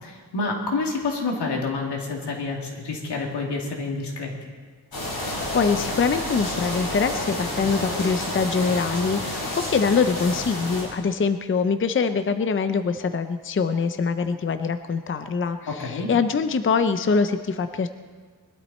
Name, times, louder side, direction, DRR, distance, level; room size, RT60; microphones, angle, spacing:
voice 1, 0.0-4.3 15.7-16.1, left 3 dB, 90° left, -1 dB, 2.6 m, -28 dB
sound 1, 4.9-10.8, left 1 dB, 65° left, 6.2 m, -30 dB
voice 2, 5.1-17.9, left 5 dB, 30° left, 9 dB, 0.6 m, -24 dB
21.5 x 12.0 x 4.3 m, 1.5 s
wide cardioid pair, 130°, 39 cm